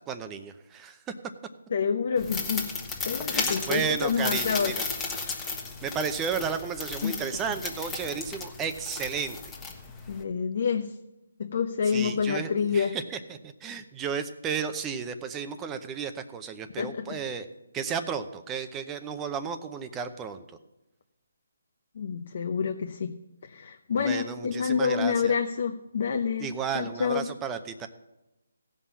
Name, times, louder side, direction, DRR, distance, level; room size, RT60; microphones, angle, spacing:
voice 1, 0.1-1.0 3.3-4.8 5.8-9.5 11.9-17.5 17.7-20.4 24.0-25.3 26.4-27.9, right 6 dB, 15° right, 9 dB, 0.6 m, -33 dB
voice 2, 1.7-2.7 3.1-4.7 7.0-7.1 10.1-11.0 11.4-12.9 16.8-17.2 22.0-23.1 23.4-27.3, left 6 dB, 50° left, 5 dB, 0.7 m, -28 dB
sound 1, 2.2-10.2, left 4 dB, 10° left, 1.2 m, -34 dB
16.0 x 5.6 x 7.1 m, 0.98 s
hypercardioid pair, 160°, 0 cm